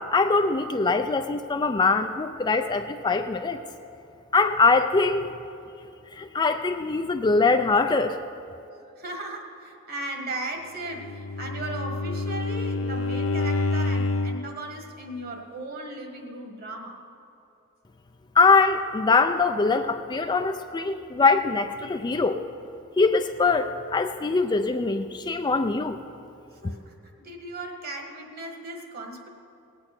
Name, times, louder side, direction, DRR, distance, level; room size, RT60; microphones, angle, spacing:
voice 1, 0.0-3.6 4.3-5.3 6.2-8.2 18.4-22.4 23.0-26.0, left 4 dB, 20° left, 7 dB, 0.4 m, -22 dB
voice 2, 8.7-17.0 26.5-29.3, right 2 dB, 45° right, 2 dB, 1.7 m, -37 dB
Bowed string instrument, 10.9-14.5, left 3 dB, 80° left, 0.7 m, -27 dB
18.5 x 8.7 x 6.0 m, 2.6 s
head